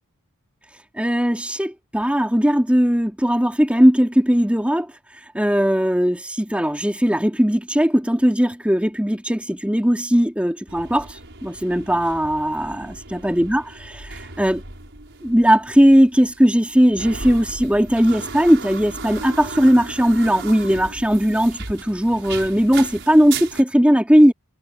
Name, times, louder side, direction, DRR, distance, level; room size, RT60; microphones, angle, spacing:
voice 1, 0.7-14.6 15.2-24.3, equal, 5° right, 4.1 m, -18 dB
sound 1, 10.7-23.6, right 4 dB, 55° right, 6.0 m, -36 dB
head